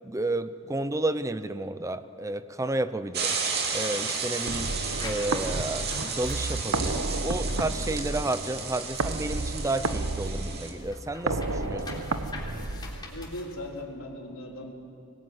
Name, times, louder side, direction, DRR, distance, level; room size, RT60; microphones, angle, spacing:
voice 1, 0.0-3.4 3.7-4.7 5.0-12.0, right 2 dB, 15° right, 12 dB, 0.6 m, -31 dB
sound 1, 3.1-10.7, right 5 dB, 50° right, 3.1 m, -33 dB
sound 2, 4.5-13.4, right 2 dB, 80° right, 1.1 m, -32 dB
sound 3, 4.9-9.2 9.5-13.8, left 3 dB, 20° left, 3.5 m, -46 dB
voice 2, 13.1-14.7, left 1 dB, 85° left, 0 dB, 3.6 m, -38 dB
24.5 x 19.5 x 9.4 m, 2.8 s
head